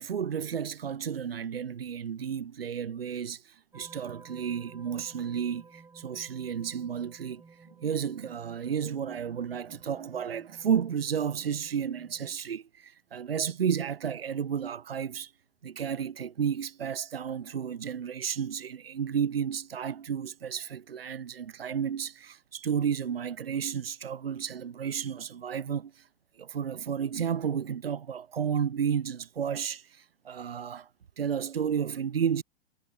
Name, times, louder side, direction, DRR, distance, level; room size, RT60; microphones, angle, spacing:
voice 1, 0.0-7.4 7.8-15.3 15.6-26.1 26.4-30.9 31.2-32.4, right 7 dB, 75° right, 0.9 m, -32 dB
sound 1, 3.7-12.3, right 4 dB, 10° right, 4.6 m, -54 dB
figure-of-eight pair, 100°, 30 cm